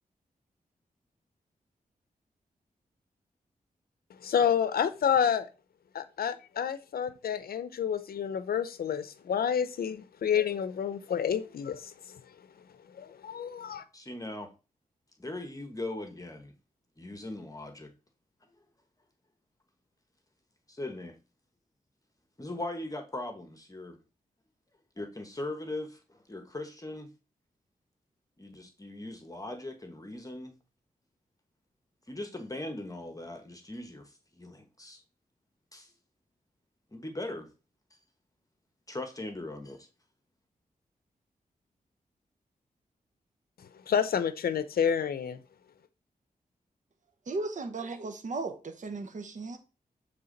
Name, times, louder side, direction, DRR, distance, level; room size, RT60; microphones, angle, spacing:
voice 1, 4.2-5.5 5.9-12.2 12.9-13.8 43.9-45.4, left 8 dB, 80° left, 0.6 m, -29 dB
voice 2, 13.9-14.5 15.2-16.5 17.0-17.9 20.7-21.2 22.4-24.0 25.0-27.1 28.4-30.6 32.1-35.0 35.7-35.9 36.9-37.5 38.9-39.9, left 2 dB, 20° left, 1.1 m, -39 dB
voice 3, 47.3-49.6, right 3 dB, 55° right, 0.9 m, -36 dB
7.0 x 3.5 x 3.9 m
cardioid pair, 55°, 15 cm